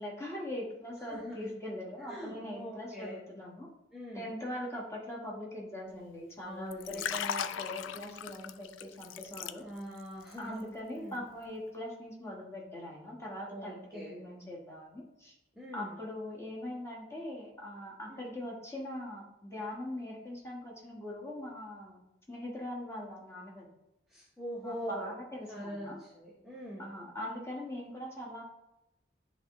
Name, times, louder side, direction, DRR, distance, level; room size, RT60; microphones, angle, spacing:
voice 1, 0.0-3.7 4.1-9.7 10.4-15.4 15.7-22.0 22.3-23.7 24.6-26.0 26.8-28.4, left 1 dB, 15° left, -4 dB, 1.3 m, -41 dB
voice 2, 1.0-1.6 2.0-3.2 3.9-4.3 6.4-7.2 9.6-10.7 10.9-11.2 13.5-14.2 15.5-16.1 18.1-18.3 24.1-25.1 25.5-26.9, equal, ahead, -7 dB, 0.9 m, -43 dB
Liquid, 6.7-10.0 10.3-10.6, left 9 dB, 80° left, 0.3 m, -38 dB
10.0 x 3.5 x 3.0 m, 0.90 s
head